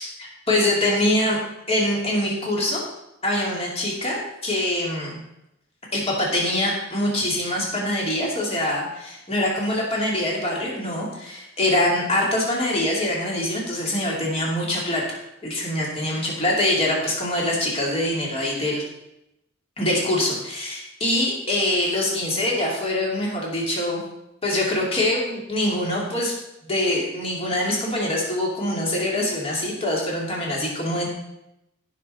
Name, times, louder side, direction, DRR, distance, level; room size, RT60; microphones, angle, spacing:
voice 1, 0.0-1.4 1.7-2.8 3.2-5.2 5.9-15.2 15.4-18.8 19.8-24.0 24.4-26.3 26.7-31.1, left 1 dB, 30° left, -3 dB, 2.7 m, -24 dB
16.5 x 6.1 x 4.3 m, 0.86 s
head